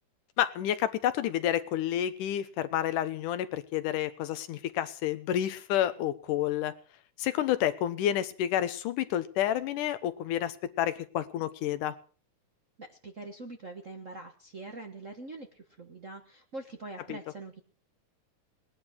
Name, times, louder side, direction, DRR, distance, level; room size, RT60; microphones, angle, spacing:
voice 1, 0.4-6.7 7.2-12.0 17.1-17.2, left 11 dB, 85° left, 12 dB, 2.6 m, -29 dB
voice 2, 12.8-17.6, right 2 dB, 55° right, 4 dB, 0.8 m, -44 dB
19.0 x 11.0 x 6.2 m, 0.41 s
omnidirectional pair, 3.6 m